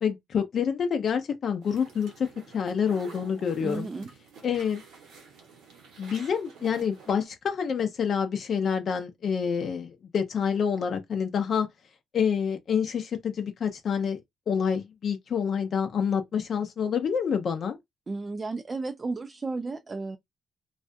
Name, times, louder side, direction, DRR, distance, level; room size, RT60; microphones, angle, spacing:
voice 1, 0.0-3.9 4.4-4.8 6.0-11.7 12.1-14.2 14.5-17.8, left 7 dB, 60° left, 0.5 m, -27 dB
sound 1, 1.6-7.2, right 5 dB, 85° right, 1.0 m, -49 dB
voice 2, 3.6-4.1 18.1-20.2, right 3 dB, 35° right, 0.3 m, -33 dB
2.4 x 2.2 x 2.5 m
supercardioid pair, 65°, 0 cm